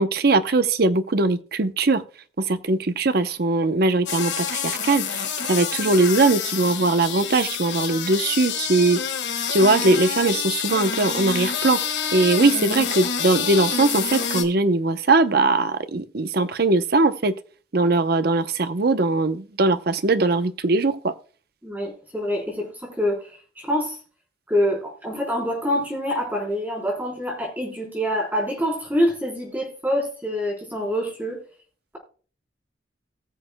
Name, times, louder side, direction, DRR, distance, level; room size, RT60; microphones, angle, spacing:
voice 1, 0.0-2.0 2.4-9.0 9.5-11.8 12.1-17.3 17.7-21.1, right 3 dB, 55° right, 0.7 m, -20 dB
sound 1, 4.1-14.4, left 7 dB, 70° left, 1.7 m, -27 dB
voice 2, 21.6-24.0 24.5-31.4, equal, 10° right, 3.7 m, -26 dB
19.0 x 6.6 x 2.2 m
head